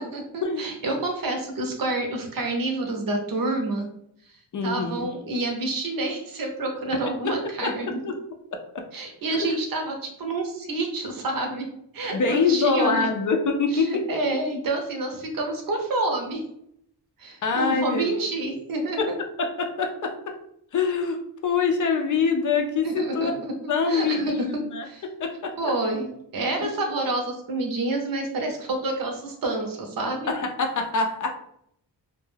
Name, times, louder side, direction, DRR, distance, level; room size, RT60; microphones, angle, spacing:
voice 1, 0.0-3.9 4.6-8.0 8.9-11.7 11.9-13.1 13.7-16.4 17.2-19.1 22.8-25.0 25.6-30.3, right 2 dB, 55° right, 2 dB, 0.7 m, -28 dB
voice 2, 4.5-5.1 7.2-7.8 8.0-8.2 8.5-8.8 9.4-9.6 12.1-14.1 17.4-18.0 19.0-19.1 19.4-20.3 20.7-23.3 23.7-25.5 26.6-26.7 30.3-31.3, left 4 dB, 50° left, 4 dB, 0.4 m, -25 dB
2.2 x 2.1 x 3.2 m, 0.73 s
wide cardioid pair, 100°, 40 cm